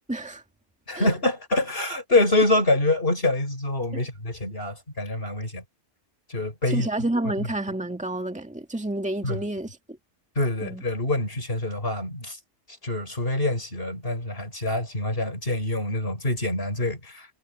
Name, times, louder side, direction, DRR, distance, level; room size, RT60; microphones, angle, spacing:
voice 1, 0.1-0.4 1.0-1.1 6.7-9.8 10.6-10.8, right 1 dB, 5° right, 1.9 m, -29 dB
voice 2, 0.9-5.6 6.3-6.9 9.2-9.4 10.4-12.4 12.8-17.4, left 2 dB, 50° left, 5.7 m, -25 dB
omnidirectional pair, 1.3 m